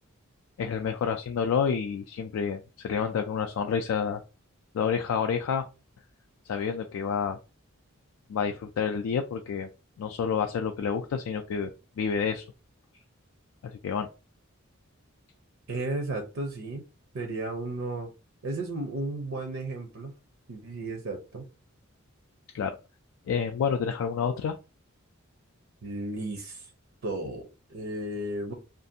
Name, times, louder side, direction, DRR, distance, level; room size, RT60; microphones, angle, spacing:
voice 1, 0.6-4.2 4.7-5.7 6.5-7.4 8.3-9.7 10.0-11.7 12.0-12.4 13.6-14.1 22.5-22.8 23.3-24.6, left 6 dB, 80° left, 0.3 m, -29 dB
voice 2, 15.7-16.8 17.1-18.1 18.4-20.1 20.5-21.4 25.8-26.7 27.0-28.5, right 2 dB, 70° right, 0.5 m, -34 dB
2.6 x 2.4 x 2.6 m
head